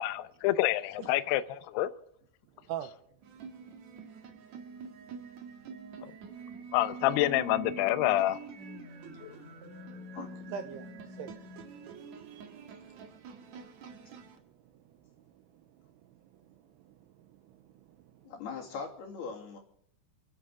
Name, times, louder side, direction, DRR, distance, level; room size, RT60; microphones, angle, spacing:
voice 1, 0.0-1.9 6.7-8.4 9.2-9.4, left 14 dB, 85° left, 2.3 m, -28 dB
sound 1, 3.2-14.4, right 4 dB, 55° right, 2.0 m, -46 dB
voice 2, 10.5-11.3 12.3-15.1 15.5-18.3, right 8 dB, 85° right, 2.4 m, -46 dB
voice 3, 18.2-19.6, left 5 dB, 55° left, 4.2 m, -40 dB
29.5 x 11.0 x 3.6 m
omnidirectional pair, 5.7 m